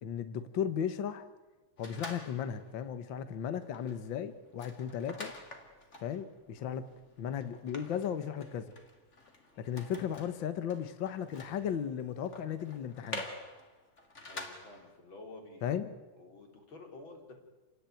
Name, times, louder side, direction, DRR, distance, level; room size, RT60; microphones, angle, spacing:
voice 1, 0.0-1.3 1.8-5.3 6.0-6.9 7.2-8.7 9.6-13.2 15.6-15.9, left 8 dB, 60° left, 11 dB, 1.3 m, -35 dB
sound 1, 1.8-2.7 3.2-3.3 3.6-15.0, left 2 dB, 25° left, 2.6 m, -48 dB
voice 2, 14.3-15.9 16.2-17.4, left 2 dB, 40° left, 3 dB, 4.2 m, -51 dB
29.0 x 18.0 x 9.2 m, 1.2 s
omnidirectional pair, 3.5 m